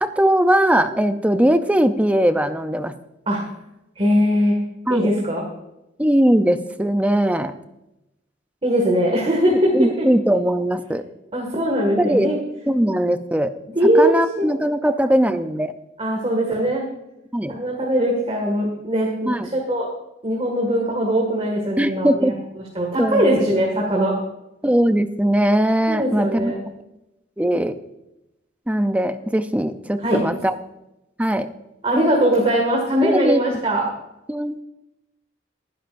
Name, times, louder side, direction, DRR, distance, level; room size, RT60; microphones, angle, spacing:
voice 1, 0.0-2.9 4.9-5.1 6.0-7.6 9.5-11.0 12.0-12.3 12.7-13.5 14.0-15.7 17.3-17.5 19.3-19.5 21.8-22.3 23.0-23.3 24.6-26.5 27.4-27.7 28.7-30.5 31.2-31.5 33.0-33.4 34.3-34.6, right 1 dB, 5° right, 9 dB, 0.5 m, -20 dB
voice 2, 4.0-4.6 4.9-5.5 8.6-10.1 11.3-12.4 13.8-14.6 16.0-16.9 17.5-19.9 20.2-22.3 22.7-24.2 25.9-26.6 30.0-30.2 31.8-33.9, equal, 30° right, -1 dB, 1.9 m, -20 dB
21.5 x 10.0 x 2.6 m, 0.89 s
head